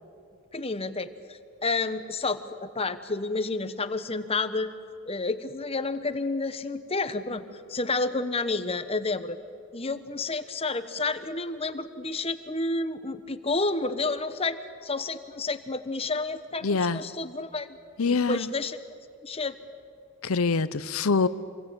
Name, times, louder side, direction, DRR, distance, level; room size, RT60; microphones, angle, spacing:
voice 1, 0.5-4.7 5.1-7.4 7.7-9.4 9.7-17.7 18.0-18.8 19.2-19.6, left 3 dB, 25° left, 11 dB, 1.1 m, -30 dB
voice 2, 16.6-17.0 18.0-18.5 20.2-21.3, left 4 dB, 70° left, 15 dB, 0.8 m, -24 dB
27.5 x 22.5 x 8.9 m, 2.4 s
head